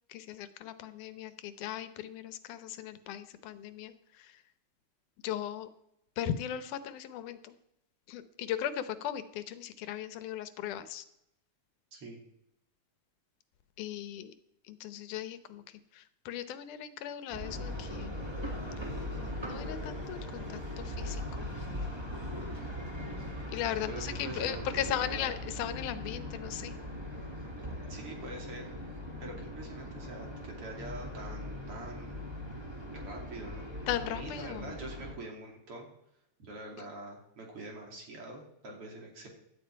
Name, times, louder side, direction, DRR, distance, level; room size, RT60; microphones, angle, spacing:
voice 1, 0.1-4.4 5.2-5.7 6.2-7.6 8.1-11.1 13.8-14.4 14.6-18.2 19.5-21.5 23.5-26.7 33.9-34.8 36.8-36.9, left 10 dB, 90° left, 12 dB, 2.4 m, -38 dB
sound 1, 17.3-35.1, left 1 dB, 10° right, 1.5 m, -40 dB
voice 2, 23.9-25.3 27.9-28.7 29.2-32.3 32.9-33.7 34.0-35.9 36.4-39.3, right 2 dB, 50° right, 1 dB, 3.4 m, -44 dB
16.5 x 11.5 x 4.6 m, 0.82 s
omnidirectional pair, 3.5 m